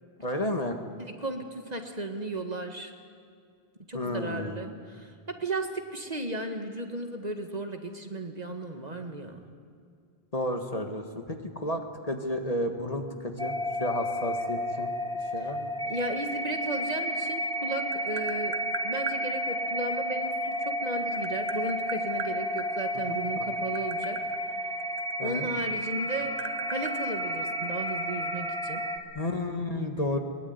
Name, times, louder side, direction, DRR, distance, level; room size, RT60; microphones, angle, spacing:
voice 1, 0.2-0.8 3.9-4.6 10.3-13.5 13.8-14.9 15.3-15.7 23.1-23.4 25.2-25.5 29.1-30.2, left 1 dB, 35° left, 5 dB, 1.8 m, -32 dB
voice 2, 1.0-2.9 3.9-9.4 15.4-15.5 15.9-18.5 18.8-24.2 25.2-26.3 26.7-28.8, right 2 dB, 40° right, 5 dB, 1.9 m, -35 dB
sound 1, 13.4-29.0, equal, 5° left, 1.5 m, -32 dB
Tap, 17.3-19.2 20.5-22.7 23.4-25.6 25.9-27.9, right 6 dB, 70° right, 1.3 m, -39 dB
21.5 x 21.5 x 9.6 m, 2.2 s
omnidirectional pair, 1.1 m